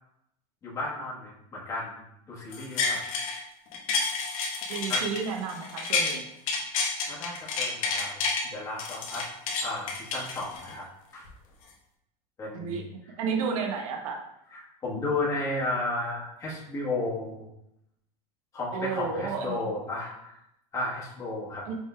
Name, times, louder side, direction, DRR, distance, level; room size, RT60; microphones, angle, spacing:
voice 1, 0.6-2.0 2.3-3.1 4.9-5.0 7.0-9.3 9.6-10.9 11.1-11.3 12.4-12.8 14.5-17.5 18.5-20.4 20.7-21.6, left 2 dB, 20° left, -5 dB, 1.2 m, -33 dB
sound 1, 2.5-3.4 3.7-6.1 6.5-8.4 8.8-10.8 11.2-11.3, left 4 dB, 75° left, 1.1 m, -29 dB
voice 2, 4.7-6.2 12.5-12.8 13.2-14.2 18.7-19.7 21.7-21.8, right 5 dB, 80° right, 1 dB, 0.8 m, -31 dB
5.9 x 3.6 x 2.2 m, 0.81 s
supercardioid pair, 155°, 18 cm